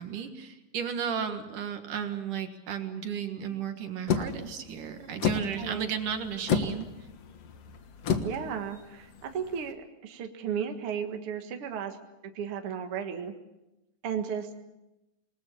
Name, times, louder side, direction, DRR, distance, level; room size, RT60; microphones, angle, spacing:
voice 1, 0.0-6.9, right 8 dB, 70° right, 6 dB, 3.1 m, -34 dB
sound 1, 4.1-9.7, left 7 dB, 55° left, 2.1 m, -32 dB
voice 2, 5.6-5.9 8.2-12.0 12.2-13.3 14.0-14.5, right 7 dB, 50° right, 4 dB, 2.2 m, -34 dB
27.5 x 20.5 x 7.0 m, 0.95 s
omnidirectional pair, 3.9 m